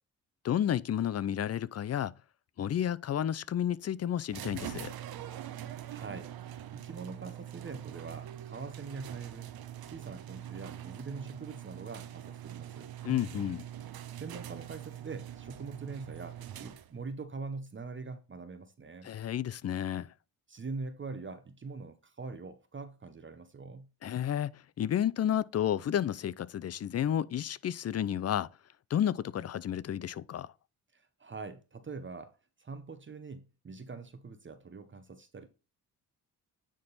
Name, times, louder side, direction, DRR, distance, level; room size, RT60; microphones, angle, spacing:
voice 1, 0.4-2.1 2.6-4.9 13.0-13.6 19.0-20.1 24.0-28.5 28.9-30.5, left 10 dB, 45° left, 0.5 m, -31 dB
sound 1, 4.3-17.1, right 11 dB, 75° right, 0.8 m, -44 dB
voice 2, 5.6-9.5 9.9-12.9 14.1-19.1 20.5-23.9 30.9-35.5, right 4 dB, 30° right, 0.9 m, -43 dB
9.4 x 3.6 x 4.0 m
cardioid pair, 85°, 37 cm